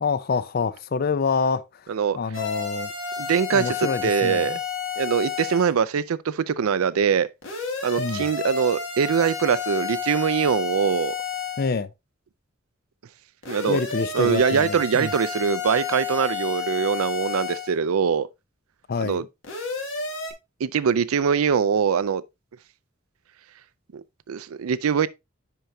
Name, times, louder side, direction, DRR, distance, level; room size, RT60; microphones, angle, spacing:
voice 1, 0.0-1.6 2.2-2.9 3.5-4.6 8.0-8.3 11.6-11.9 13.6-15.1 18.9-19.2, left 5 dB, 45° left, 0.4 m, -26 dB
sound 1, 2.3-5.7 7.4-11.7 13.4-17.7 19.4-20.3, left 6 dB, 65° left, 2.0 m, -31 dB
voice 2, 3.2-3.8 4.0-4.6 5.0-7.3 7.8-11.2 13.5-13.8 14.1-18.3 19.0-19.2 20.6-22.2 23.9-25.1, right 7 dB, 90° right, 0.4 m, -23 dB
10.5 x 4.6 x 2.7 m
head